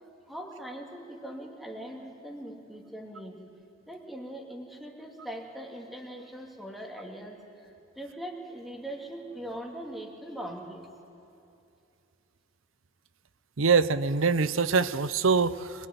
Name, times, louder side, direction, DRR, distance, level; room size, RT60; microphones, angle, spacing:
voice 1, 0.3-3.4 3.9-7.4 8.0-10.9, right 1 dB, ahead, 0 dB, 2.8 m, -41 dB
voice 2, 13.6-15.9, right 5 dB, 80° right, 14 dB, 0.8 m, -24 dB
24.5 x 21.0 x 9.5 m, 2.6 s
head